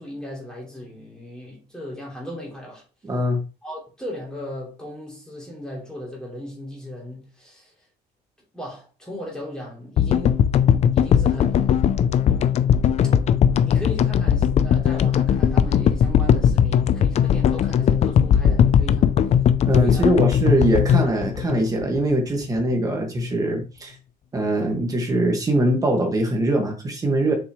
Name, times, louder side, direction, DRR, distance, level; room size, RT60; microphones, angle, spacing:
voice 1, 0.0-2.8 3.6-7.7 8.5-10.4 10.9-11.8 13.6-19.1 19.8-20.1, left 1 dB, 5° left, 3.0 m, -36 dB
voice 2, 3.0-3.4 19.7-23.9 24.3-27.3, right 1 dB, 20° right, 1.7 m, -22 dB
sound 1, 10.0-22.3, left 8 dB, 40° left, 0.4 m, -19 dB
6.8 x 5.9 x 3.1 m
cardioid pair, 175°, 18 cm